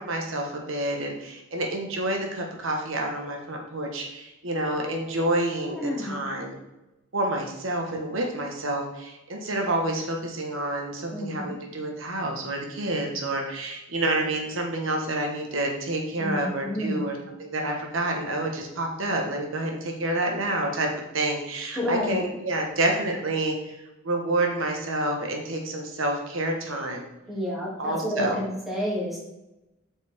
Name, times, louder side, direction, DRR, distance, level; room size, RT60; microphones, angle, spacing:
voice 1, 0.0-6.6 7.1-20.9 21.1-23.7 24.0-27.1 27.8-28.4, right 1 dB, 85° right, 2 dB, 1.4 m, -28 dB
voice 2, 5.7-6.2 11.1-11.5 16.2-17.0 21.8-22.2 27.3-29.2, left 1 dB, ahead, -6 dB, 2.6 m, -30 dB
8.2 x 6.2 x 3.6 m, 0.97 s
head